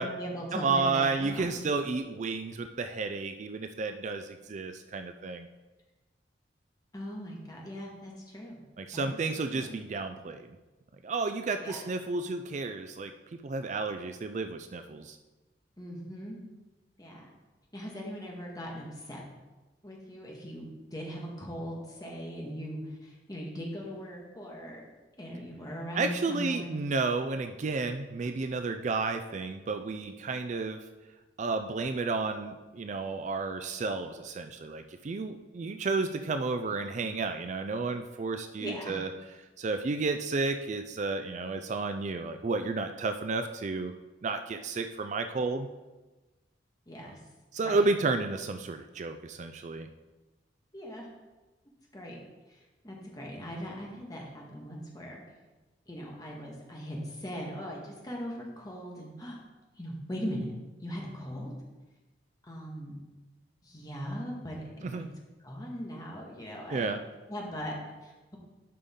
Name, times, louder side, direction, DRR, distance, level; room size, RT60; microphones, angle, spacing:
voice 1, 0.0-1.6 6.9-8.6 8.9-9.2 9.5-9.7 11.6-11.8 15.8-16.4 17.0-17.3 17.7-19.2 19.8-24.8 25.2-26.9 38.6-39.0 46.9-47.2 47.6-47.8 50.7-51.1 51.9-52.2 52.8-55.2 55.9-59.4 59.8-60.5 60.8-61.5 62.5-62.9 63.6-65.1 65.4-66.9 67.3-68.4, equal, 20° left, -2 dB, 1.6 m, -39 dB
voice 2, 0.5-5.5 8.8-10.5 11.0-15.2 25.9-30.8 31.4-39.1 39.6-43.9 44.2-45.7 47.1-47.2 47.5-49.9 64.8-65.1 66.7-67.0, right 3 dB, 40° right, 7 dB, 0.4 m, -32 dB
11.0 x 5.3 x 3.7 m, 1.2 s
head